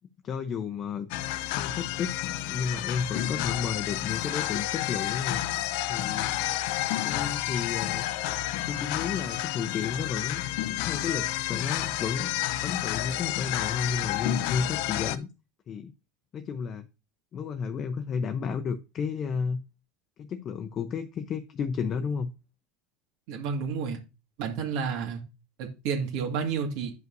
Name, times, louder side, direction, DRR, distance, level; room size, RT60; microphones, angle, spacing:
voice 1, 0.2-1.1 1.5-2.2 2.5-5.6 5.9-6.3 7.0-8.0 8.7-10.4 10.8-12.3 12.6-15.3 15.7-15.9 16.3-16.9 17.3-19.6 20.2-22.3, left 6 dB, 35° left, 8 dB, 0.7 m, -32 dB
sound 1, 1.1-15.2, left 14 dB, 70° left, 0.6 m, -30 dB
voice 2, 23.3-24.0 24.4-25.2 25.6-26.9, right 6 dB, 65° right, 1 dB, 1.9 m, -30 dB
10.5 x 5.3 x 2.6 m, 0.28 s
supercardioid pair, 120°, 0 cm